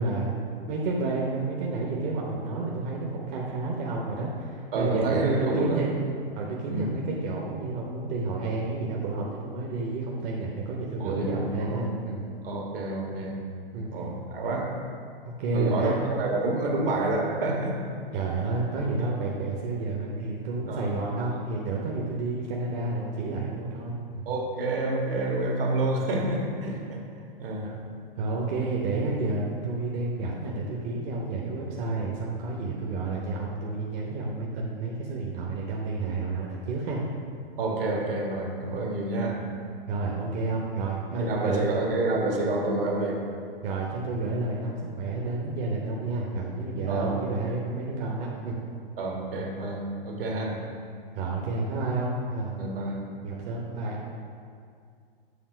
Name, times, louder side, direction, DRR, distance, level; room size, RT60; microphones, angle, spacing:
voice 1, 0.0-6.0 6.3-12.2 13.7-13.9 15.4-16.0 18.1-24.2 27.6-27.9 28.2-37.0 39.9-41.7 43.6-48.6 51.1-52.5 53.2-54.0, right 3 dB, 45° right, -3 dB, 1.0 m, -30 dB
voice 2, 4.7-5.8 6.7-7.0 11.0-11.8 12.4-13.4 13.9-14.8 15.5-17.8 19.0-19.1 20.7-21.0 21.3-21.4 24.2-27.1 27.4-27.8 37.6-39.5 39.9-40.0 41.1-43.3 46.9-47.6 49.0-50.6 52.6-53.1, right 2 dB, 70° right, 0 dB, 1.6 m, -29 dB
7.3 x 3.6 x 6.0 m, 2.2 s
hypercardioid pair, 120°, 30 cm